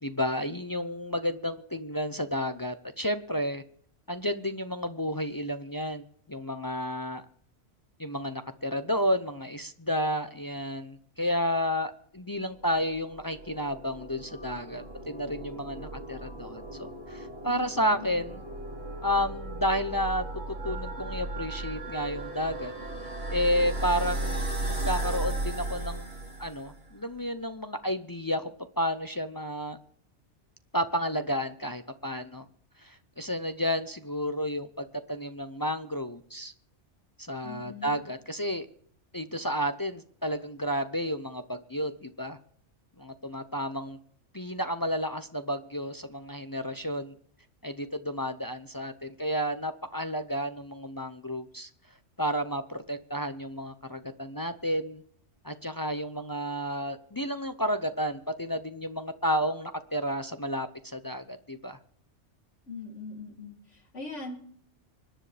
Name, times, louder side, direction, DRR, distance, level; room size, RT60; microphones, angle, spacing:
voice 1, 0.0-3.6 4.1-7.2 8.0-18.4 19.0-20.2 20.6-22.7 23.3-24.5 24.8-26.1 26.4-29.8 30.7-32.5 32.8-36.5 37.2-38.7 39.1-42.4 43.0-44.0 44.3-47.1 47.6-51.7 52.2-55.0 55.4-61.8, equal, 25° left, 9 dB, 0.5 m, -31 dB
sound 1, 12.7-26.9, right 1 dB, 55° right, 2.8 m, -36 dB
voice 2, 17.4-18.2 37.4-38.0 62.7-64.4, left 3 dB, 80° left, 0 dB, 3.4 m, -41 dB
25.5 x 10.0 x 3.4 m, 0.62 s
omnidirectional pair, 1.2 m